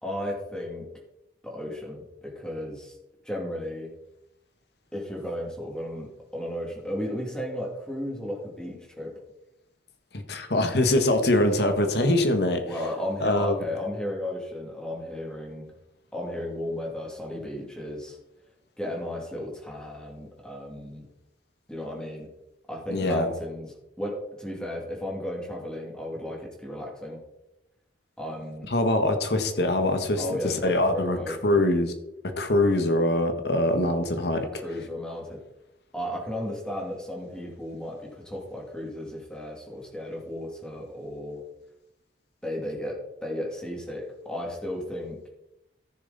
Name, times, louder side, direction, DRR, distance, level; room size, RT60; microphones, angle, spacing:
voice 1, 0.0-0.9 1.4-3.0 3.2-3.9 4.9-9.1 12.6-15.7 16.1-18.2 18.8-21.1 21.7-22.3 22.7-27.2 28.2-28.7 30.2-31.6 34.5-35.4 35.9-41.4 42.4-45.3, left 1 dB, 5° left, -2 dB, 2.5 m, -34 dB
voice 2, 10.1-12.6 13.2-13.5 22.9-23.3 28.7-31.9 32.4-34.5, left 1 dB, 65° left, 7 dB, 1.4 m, -23 dB
14.0 x 7.0 x 4.1 m, 0.89 s
head